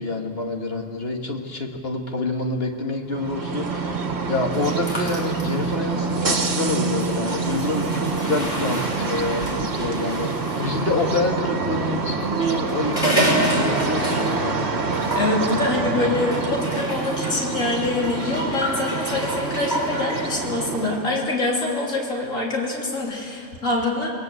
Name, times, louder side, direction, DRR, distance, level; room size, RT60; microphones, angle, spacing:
voice 1, 0.0-4.0 4.3-9.5 9.8-10.3 10.6-14.8, left 2 dB, 50° left, 3 dB, 2.4 m, -27 dB
sound 1, 3.1-21.2, right 4 dB, 55° right, 1.8 m, -26 dB
sound 2, 4.5-11.1 12.2-14.6 14.8-15.3 16.3-20.2, equal, 35° left, 5.3 m, -30 dB
voice 2, 15.1-24.1, left 2 dB, 90° left, -2 dB, 3.7 m, -25 dB
28.5 x 21.0 x 8.0 m, 2.5 s
omnidirectional pair, 1.3 m